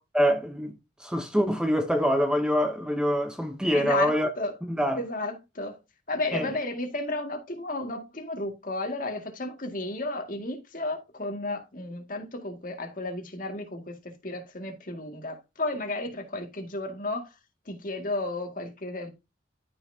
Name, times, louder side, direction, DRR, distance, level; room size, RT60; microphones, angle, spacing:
voice 1, 0.1-0.7 1.0-4.3 4.7-5.0 6.3-6.5, equal, 5° right, 0.8 m, -25 dB
voice 2, 3.7-4.5 5.0-5.8 6.1-14.0 14.2-17.3 17.7-19.1, left 2 dB, 45° left, 2.0 m, -33 dB
13.5 x 5.7 x 2.7 m
head